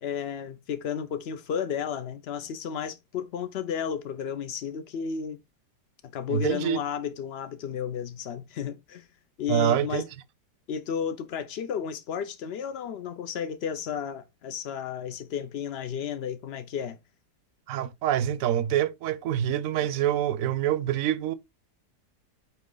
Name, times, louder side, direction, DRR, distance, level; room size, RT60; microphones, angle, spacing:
voice 1, 0.0-5.4 6.0-9.1 9.4-10.0 10.7-17.0, left 7 dB, 90° left, 0.5 m, -33 dB
voice 2, 6.3-6.8 9.5-10.1 17.7-21.3, right 11 dB, 70° right, 0.8 m, -26 dB
8.9 x 3.1 x 3.8 m
omnidirectional pair, 1.8 m